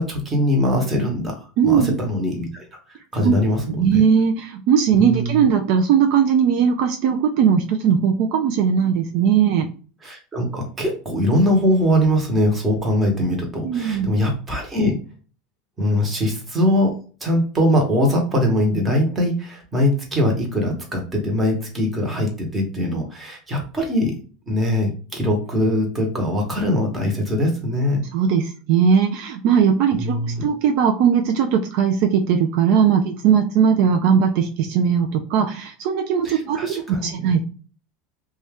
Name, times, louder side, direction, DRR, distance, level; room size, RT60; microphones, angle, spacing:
voice 1, 0.0-4.0 4.9-5.5 10.0-15.0 15.8-16.9 17.2-24.1 24.5-28.0 30.0-30.4 36.2-37.1, left 1 dB, 15° right, 2 dB, 1.0 m, -22 dB
voice 2, 1.6-2.0 3.2-3.3 3.8-9.7 13.6-14.1 28.1-37.4, right 7 dB, 60° right, 4 dB, 0.4 m, -19 dB
2.6 x 2.3 x 3.4 m, 0.38 s
supercardioid pair, 140°, 0 cm